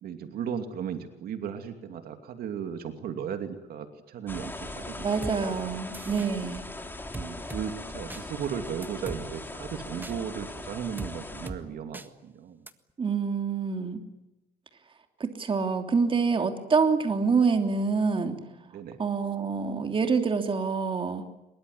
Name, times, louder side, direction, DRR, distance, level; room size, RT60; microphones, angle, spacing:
voice 1, 0.0-5.6 7.1-12.6 18.7-19.0, right 8 dB, 65° right, 7 dB, 2.6 m, -36 dB
sound 1, 4.3-11.5, left 2 dB, 10° left, 3.3 m, -40 dB
voice 2, 5.0-6.6 13.0-14.0 15.2-18.4 19.0-21.2, right 5 dB, 30° right, 5 dB, 3.1 m, -26 dB
sound 2, 5.2-5.4 5.9-6.3 7.1-7.6 8.1-8.2 8.8-9.2 10.0-10.2 11.0-11.1 11.5-11.6 11.9-12.1 12.7-12.8, right 2 dB, 10° right, 1.6 m, -38 dB
23.5 x 22.0 x 9.7 m, 0.96 s
cardioid pair, 110°, 17 cm